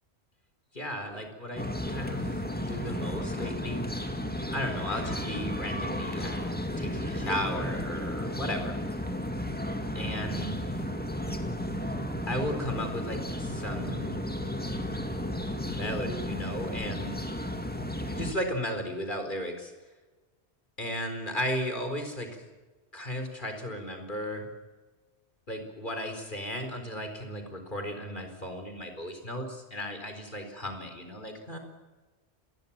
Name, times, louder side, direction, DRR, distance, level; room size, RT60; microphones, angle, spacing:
voice 1, 0.7-3.9 4.5-8.8 9.9-10.8 12.3-14.2 15.7-17.1 18.1-19.7 20.8-22.4 22.9-24.5 25.5-31.6, equal, 50° left, 6 dB, 4.5 m, -35 dB
sound 1, 1.6-18.3, left 1 dB, 10° left, 2.2 m, -33 dB
26.5 x 21.5 x 7.3 m, 1.3 s
omnidirectional pair, 1.1 m